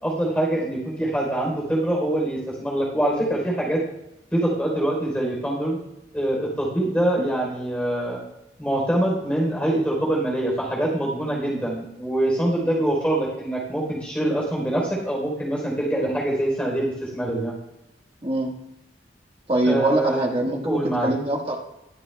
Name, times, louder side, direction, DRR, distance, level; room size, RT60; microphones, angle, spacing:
voice 1, 0.0-3.8 4.3-5.8 6.1-8.2 8.6-17.5 19.6-20.2 20.6-21.1, right 1 dB, 5° left, -3 dB, 3.6 m, -24 dB
voice 2, 19.5-21.6, right 1 dB, 30° right, 1 dB, 1.5 m, -24 dB
20.5 x 7.4 x 2.3 m, 0.89 s
head